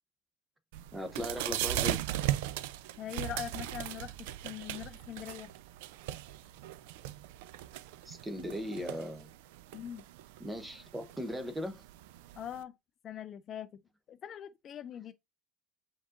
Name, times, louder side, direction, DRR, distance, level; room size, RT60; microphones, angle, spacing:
sound 1, 0.7-12.6, right 13 dB, 90° right, 0.4 m, -38 dB
voice 1, 0.9-2.0 8.0-9.3 10.4-11.8, equal, 5° right, 0.7 m, -38 dB
voice 2, 3.0-4.1 4.4-5.5 9.7-10.0 12.4-12.7 13.0-13.7 14.1-15.1, left 10 dB, 35° left, 0.3 m, -42 dB
5.1 x 3.7 x 2.5 m
cardioid pair, 155°, 0 cm